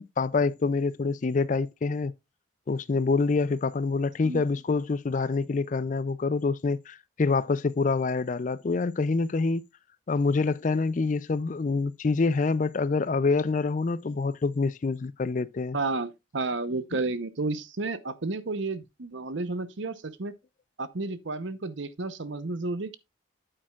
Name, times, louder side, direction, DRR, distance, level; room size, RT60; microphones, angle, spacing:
voice 1, 0.0-2.1 2.7-9.6 10.1-15.8, left 4 dB, 40° left, 0.4 m, -26 dB
voice 2, 15.7-20.3 20.8-23.0, right 3 dB, 70° right, 0.8 m, -32 dB
8.8 x 8.6 x 2.4 m
head